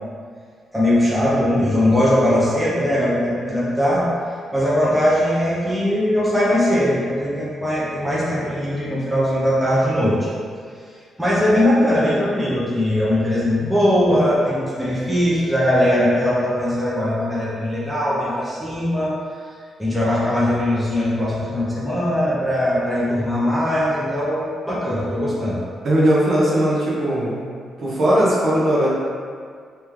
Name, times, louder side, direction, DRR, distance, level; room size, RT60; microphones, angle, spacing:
voice 1, 0.7-4.0 4.5-10.3 11.2-19.1 19.8-25.6, left 1 dB, 5° right, -9 dB, 0.7 m, -20 dB
voice 2, 25.8-27.4 27.8-28.9, right 1 dB, 45° right, -6 dB, 1.0 m, -18 dB
3.4 x 3.3 x 3.1 m, 2.1 s
cardioid pair, 155°, 0 cm